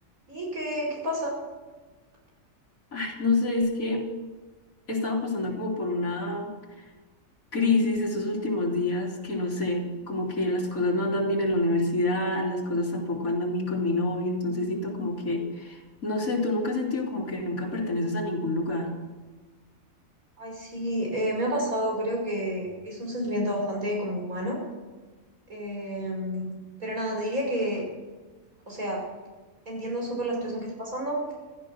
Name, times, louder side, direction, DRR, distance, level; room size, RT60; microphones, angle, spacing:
voice 1, 0.3-1.4 20.4-24.6 25.5-26.5 26.8-27.8 28.7-29.0 29.7-31.2, equal, 80° right, -1 dB, 6.0 m, -30 dB
voice 2, 2.9-4.1 4.9-6.5 6.8-6.9 7.5-18.9, left 2 dB, 80° left, -1 dB, 3.6 m, -27 dB
15.5 x 13.5 x 6.3 m, 1.3 s
omnidirectional pair, 1.4 m